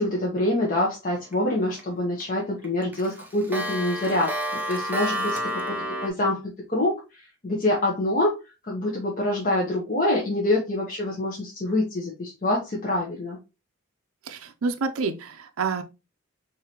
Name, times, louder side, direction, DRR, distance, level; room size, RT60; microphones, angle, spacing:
voice 1, 0.0-4.4 4.7-5.8 6.0-6.4 6.7-8.4 8.6-13.4, left 1 dB, 40° left, 0.9 m, -25 dB
Clock, 1.3-1.8 2.2-2.3 2.6-6.1, equal, 10° right, 0.6 m, -30 dB
voice 2, 14.3-15.8, right 4 dB, 80° right, 0.5 m, -28 dB
4.8 x 2.7 x 2.9 m
head